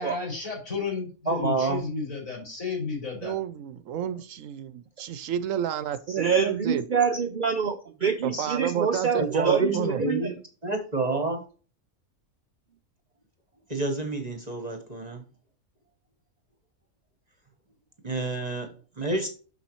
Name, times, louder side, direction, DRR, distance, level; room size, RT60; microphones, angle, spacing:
voice 1, 0.0-3.3, left 4 dB, 70° left, -3 dB, 4.7 m, -32 dB
voice 2, 1.3-1.8 9.2-10.3 10.6-11.4 13.7-15.2 18.0-19.3, right 2 dB, 30° right, 5 dB, 1.0 m, -28 dB
voice 3, 3.2-6.8 8.2-10.0, right 9 dB, 70° right, 14 dB, 0.9 m, -30 dB
voice 4, 6.1-10.3, right 6 dB, 55° right, 8 dB, 0.5 m, -26 dB
7.1 x 6.1 x 3.0 m, 0.37 s
omnidirectional pair, 1.5 m